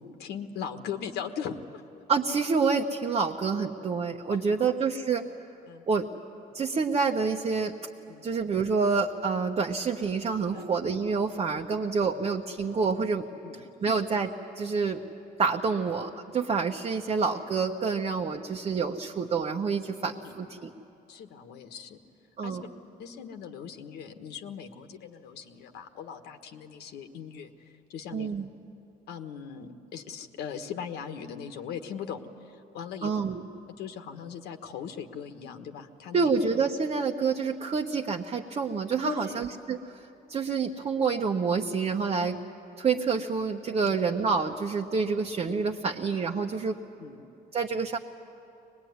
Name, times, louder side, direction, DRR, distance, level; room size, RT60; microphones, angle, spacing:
voice 1, 0.0-1.8 4.3-4.7 5.7-5.8 8.1-8.2 10.5-10.6 13.4-13.6 13.9-14.0 20.2-20.4 21.1-22.0 22.4-22.6 23.0-28.3 29.1-33.2 33.8-36.3 39.0-39.4 47.0-47.2, left 7 dB, 75° left, 6 dB, 1.5 m, -39 dB
voice 2, 2.1-5.2 5.9-6.1 6.5-7.7 8.2-13.3 13.8-15.0 15.4-20.7 22.4-22.6 28.1-28.5 33.0-33.4 36.1-39.8 40.3-42.4 42.8-46.8 47.5-48.0, right 5 dB, 35° right, 0 dB, 1.1 m, -28 dB
23.5 x 20.0 x 9.5 m, 2.8 s
cardioid pair, 110°, 17 cm